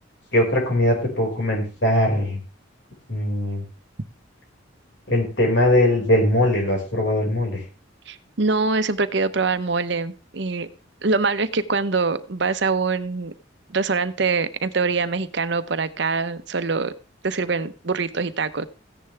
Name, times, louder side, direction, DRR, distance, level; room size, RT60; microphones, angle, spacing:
voice 1, 0.3-2.4 3.1-3.6 5.1-7.6, left 1 dB, 65° left, 0 dB, 5.2 m, -20 dB
voice 2, 8.1-10.7 11.0-13.3 13.7-16.9 17.2-18.7, right 4 dB, 60° right, 11 dB, 0.9 m, -24 dB
15.0 x 10.0 x 3.4 m, 0.31 s
head